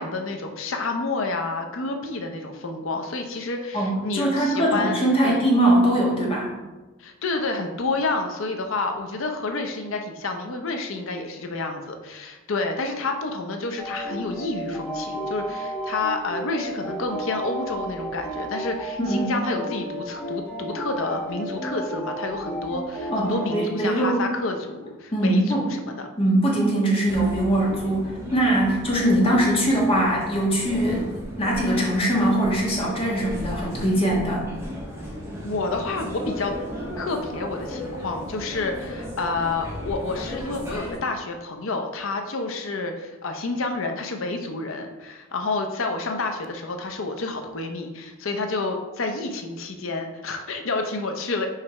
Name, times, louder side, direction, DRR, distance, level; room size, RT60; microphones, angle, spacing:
voice 1, 0.0-5.0 5.2-5.4 7.0-26.1 35.4-36.5 37.0-51.5, left 3 dB, 65° left, 5 dB, 0.6 m, -29 dB
voice 2, 3.7-6.5 19.0-19.3 23.1-24.2 25.1-25.7 26.2-31.1 31.4-34.5, right 1 dB, 25° left, -3 dB, 1.4 m, -22 dB
sound 1, 13.8-23.7, right 1 dB, 5° left, 1.3 m, -32 dB
sound 2, 27.1-41.0, equal, 15° right, 1.5 m, -35 dB
4.9 x 4.7 x 4.3 m, 1.2 s
head